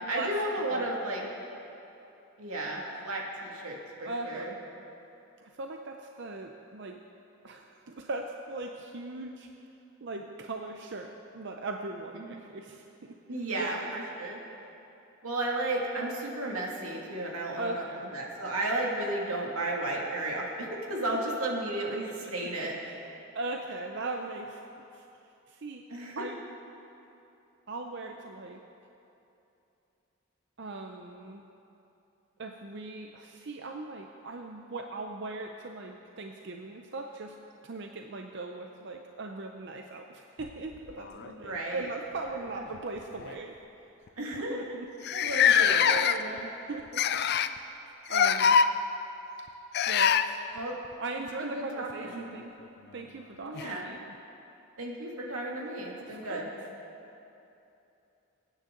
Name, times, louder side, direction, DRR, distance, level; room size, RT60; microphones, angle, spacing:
voice 1, 0.1-1.2 2.4-4.5 13.3-14.4 15.2-17.8 18.1-22.0 22.3-22.8 25.9-26.3 41.3-41.9 44.2-44.6 45.1-45.9 46.1-46.5 50.5-50.7 51.4-52.2 53.4-53.9 54.8-56.5, right 1 dB, 85° right, -2 dB, 2.3 m, -33 dB
voice 2, 4.0-4.6 5.4-7.0 7.4-9.6 10.0-12.9 13.5-13.8 17.6-18.1 21.1-21.2 21.9-22.0 22.2-23.0 23.3-24.6 24.9-25.1 25.5-25.8 26.2-26.4 27.7-28.6 30.6-31.4 32.4-37.4 37.6-43.5 44.3-47.2 48.1-48.6 49.9-50.4 51.0-52.5 52.9-54.0 56.0-56.4, right 3 dB, 55° right, 3 dB, 0.6 m, -39 dB
sound 1, 40.4-41.6 42.6-42.8 43.2-43.3 44.1-44.2 44.3-44.4 45.0-46.4 46.9-47.6 48.1-48.7 49.7-50.3 52.4-52.5 53.5-53.6, left 7 dB, 50° left, 0.4 m, -24 dB
23.5 x 9.4 x 3.9 m, 2.9 s
head